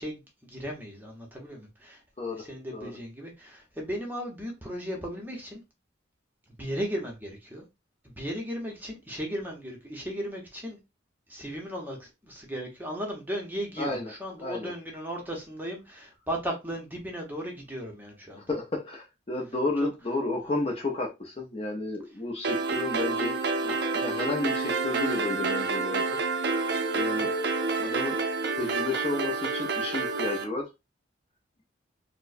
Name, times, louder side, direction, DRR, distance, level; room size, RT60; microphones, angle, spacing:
voice 1, 0.0-2.0 2.4-5.6 6.6-7.6 8.0-10.8 11.3-18.5 19.8-19.9 27.1-27.2, equal, 10° right, 0.7 m, -36 dB
voice 2, 13.8-14.1 14.4-14.7 18.3-23.4 23.6-26.2 26.9-27.3 27.8-28.2 28.5-30.7, left 2 dB, 30° left, 0.5 m, -32 dB
sound 1, 22.4-30.4, right 3 dB, 55° right, 0.5 m, -28 dB
4.4 x 2.1 x 2.5 m
head